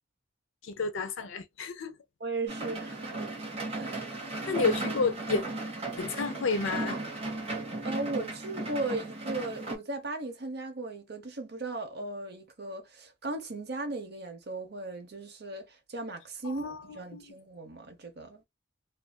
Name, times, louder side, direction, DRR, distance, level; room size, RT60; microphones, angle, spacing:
voice 1, 0.6-2.0 4.5-5.4 6.0-7.0 16.4-16.8 17.1-17.2, left 4 dB, 75° left, 0.5 m, -30 dB
voice 2, 2.2-3.3 3.8-4.0 7.8-18.4, right 2 dB, 50° right, 0.8 m, -37 dB
sound 1, 2.5-9.8, right 2 dB, 30° right, 1.1 m, -35 dB
2.6 x 2.5 x 2.2 m
head